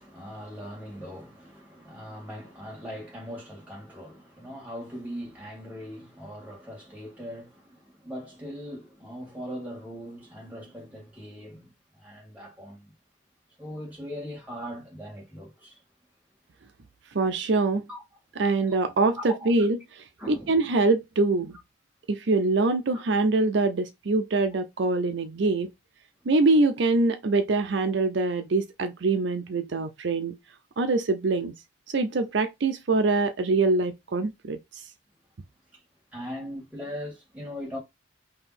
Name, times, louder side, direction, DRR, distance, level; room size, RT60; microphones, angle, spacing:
voice 1, 0.0-12.9 13.6-15.8 17.9-18.0 19.2-19.5 20.2-20.7 36.1-37.8, equal, 10° right, 2.0 m, -40 dB
voice 2, 17.1-17.9 18.4-21.6 22.1-25.7 26.3-30.4 30.8-31.5 31.9-34.6, right 3 dB, 65° right, 0.5 m, -24 dB
3.7 x 2.9 x 4.2 m
head